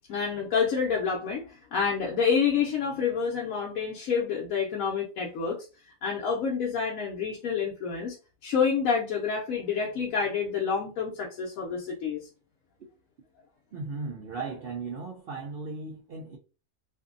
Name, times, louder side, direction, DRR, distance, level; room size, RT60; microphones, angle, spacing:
voice 1, 0.1-5.7 6.0-8.2 8.4-12.3, left 6 dB, 70° left, 1.0 m, -28 dB
voice 2, 13.7-16.4, right 4 dB, 65° right, 0.6 m, -36 dB
2.6 x 2.6 x 2.4 m
omnidirectional pair, 1.6 m